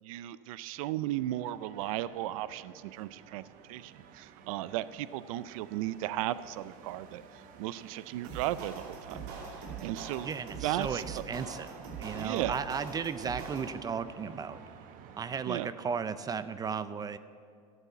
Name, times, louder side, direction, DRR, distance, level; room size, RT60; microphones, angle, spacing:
voice 1, 0.0-9.2 9.5-10.3 10.6-11.2 12.1-12.6 15.5-15.7, right 14 dB, 85° right, 17 dB, 0.5 m, -35 dB
sound 1, 1.1-15.7, right 7 dB, 50° right, 1.1 m, -52 dB
sound 2, 8.2-14.0, right 5 dB, 70° right, 2.8 m, -43 dB
voice 2, 10.2-11.7 12.0-14.6 15.2-17.2, right 6 dB, 20° right, 14 dB, 0.5 m, -35 dB
13.5 x 8.2 x 8.3 m, 2.2 s
supercardioid pair, 135°, 17 cm